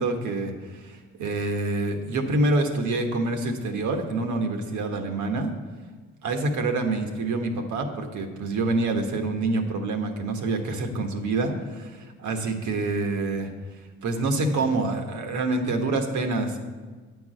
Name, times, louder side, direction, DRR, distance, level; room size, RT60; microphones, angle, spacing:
voice 1, 0.0-5.5 6.2-13.5 14.0-16.6, right 2 dB, 75° right, 4 dB, 1.3 m, -26 dB
9.4 x 4.7 x 7.8 m, 1.4 s
cardioid pair, 90°, 30 cm